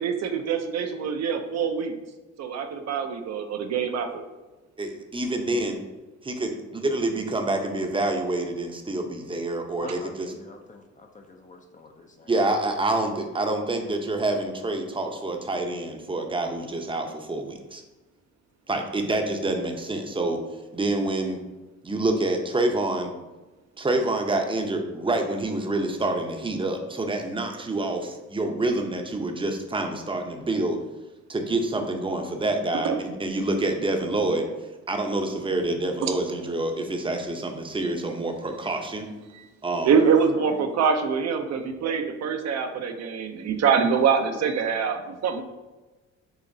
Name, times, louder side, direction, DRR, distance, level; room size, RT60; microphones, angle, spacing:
voice 1, 0.0-1.9 2.4-4.1 32.8-32.9 36.0-36.1 39.8-45.4, right 6 dB, 60° right, 6 dB, 0.6 m, -24 dB
voice 2, 4.8-5.8 6.2-6.5 6.8-10.3 12.3-17.8 18.7-20.4 20.7-21.4 21.8-23.2 23.8-30.8 31.3-34.5 34.9-39.1 39.6-40.0, right 2 dB, 15° right, 4 dB, 0.6 m, -27 dB
voice 3, 9.8-12.3 40.0-40.6, left 3 dB, 25° left, 4 dB, 0.5 m, -45 dB
7.0 x 2.8 x 2.7 m, 1.2 s
cardioid pair, 90°, 30 cm